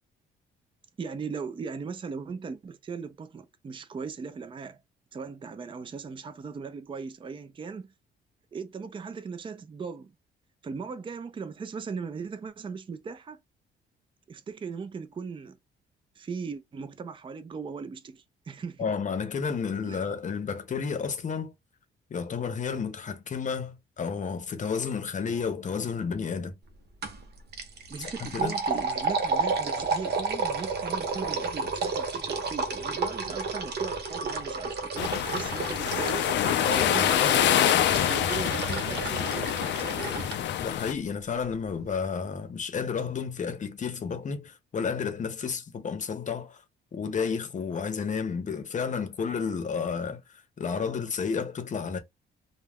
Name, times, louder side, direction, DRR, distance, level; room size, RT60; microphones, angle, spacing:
voice 1, 1.0-4.8 5.1-7.9 8.5-10.1 10.6-13.4 14.3-15.6 16.2-18.9 19.9-20.0 27.9-36.3 36.7-37.4 37.8-40.3, right 5 dB, 25° right, 0.4 m, -38 dB
voice 2, 18.8-21.5 22.1-26.5 28.0-28.6 36.6-37.4 40.6-46.6 46.9-50.2 50.6-52.0, left 6 dB, 40° left, 0.7 m, -31 dB
sound 1, 27.0-27.2 27.5-40.4, right 4 dB, 55° right, 0.8 m, -31 dB
sound 2, 35.0-40.9, left 11 dB, 65° left, 0.4 m, -26 dB
2.3 x 2.1 x 3.4 m
cardioid pair, 90°, 20 cm